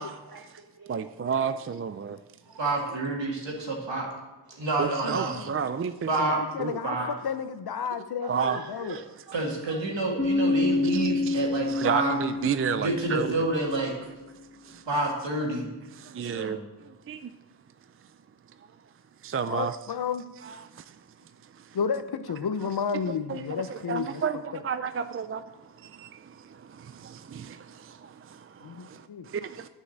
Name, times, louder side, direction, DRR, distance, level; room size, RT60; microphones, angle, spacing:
voice 1, 0.3-1.5 2.1-3.0 3.8-3.9 4.5-4.7 5.8-6.0 6.6-6.7 7.8-7.9 8.2-8.9 9.3-9.4 9.7-9.8 11.4-11.5, right 4 dB, 55° right, 1.2 m, -45 dB
voice 2, 0.9-2.2 4.8-6.8 8.3-8.6 8.9-9.0 10.9-11.4 11.7-13.4 14.6-14.8 15.9-16.6 17.1-17.2 19.2-19.8 20.4-20.8 23.1-23.4 23.7-25.4 25.8-29.7, right 7 dB, 30° right, 0.4 m, -32 dB
voice 3, 2.6-4.1 4.6-5.4 6.1-6.4 6.8-7.1 9.3-12.2 12.7-13.9 14.9-15.7 16.2-16.6, right 2 dB, 80° right, 2.3 m, -28 dB
voice 4, 5.0-5.5 6.5-9.0 19.5-20.2 21.7-24.2 24.5-24.6 28.6-29.3, left 6 dB, 60° left, 0.7 m, -32 dB
Bass guitar, 10.2-14.0, left 3 dB, 25° left, 1.9 m, -28 dB
9.8 x 5.5 x 7.2 m
wide cardioid pair, 70°, 44 cm